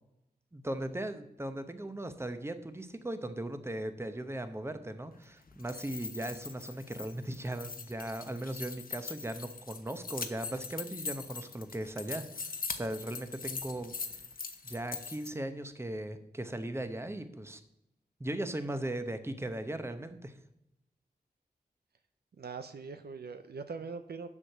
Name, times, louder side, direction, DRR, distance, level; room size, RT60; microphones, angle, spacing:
voice 1, 0.5-13.9 14.6-17.6 18.2-20.4, right 1 dB, 15° right, 9 dB, 0.9 m, -38 dB
sound 1, 5.5-15.3, left 5 dB, 60° left, 0.9 m, -42 dB
voice 2, 22.4-24.3, right 5 dB, 75° right, 9 dB, 0.7 m, -42 dB
7.3 x 6.5 x 6.7 m, 0.87 s
wide cardioid pair, 60°, 17 cm